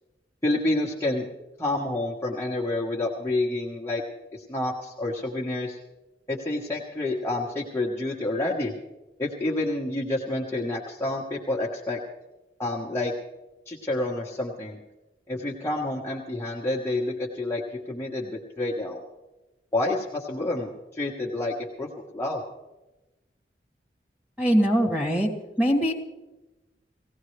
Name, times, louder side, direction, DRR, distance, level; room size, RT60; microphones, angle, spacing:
voice 1, 0.4-1.3 1.6-4.0 4.3-5.8 6.3-8.7 9.2-12.0 12.6-13.1 13.7-14.8 15.3-17.6 17.9-19.0 19.7-22.4, left 2 dB, 15° left, -4 dB, 1.2 m, -28 dB
voice 2, 24.4-25.3 25.6-25.9, equal, 5° right, -1 dB, 2.5 m, -21 dB
19.0 x 16.5 x 3.3 m, 1.1 s
head